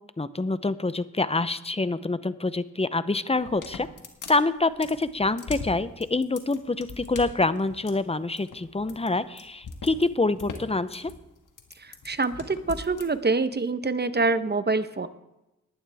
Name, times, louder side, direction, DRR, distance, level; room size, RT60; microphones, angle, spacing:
voice 1, 0.2-3.9 4.3-11.1, left 3 dB, 20° left, 14 dB, 0.8 m, -26 dB
sound 1, 3.3-13.1, left 5 dB, 85° left, 1.6 m, -41 dB
voice 2, 11.8-15.1, right 3 dB, 35° right, 11 dB, 1.0 m, -26 dB
19.0 x 11.0 x 3.5 m, 0.93 s
cardioid pair, 50°, 31 cm